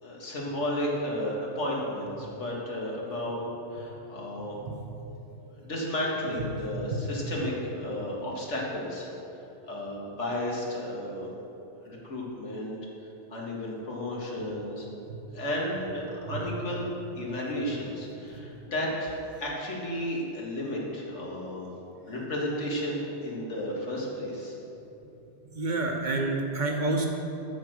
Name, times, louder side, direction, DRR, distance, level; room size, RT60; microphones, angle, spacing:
voice 1, 0.0-4.6 5.5-9.1 9.7-11.3 11.8-12.8 13.3-14.9 15.3-16.9 17.1-21.7 22.1-24.6, left 1 dB, 85° left, -3 dB, 2.1 m, -33 dB
voice 2, 25.5-27.1, right 2 dB, 45° right, 2 dB, 1.1 m, -29 dB
13.5 x 4.5 x 6.3 m, 2.9 s
omnidirectional pair, 1.2 m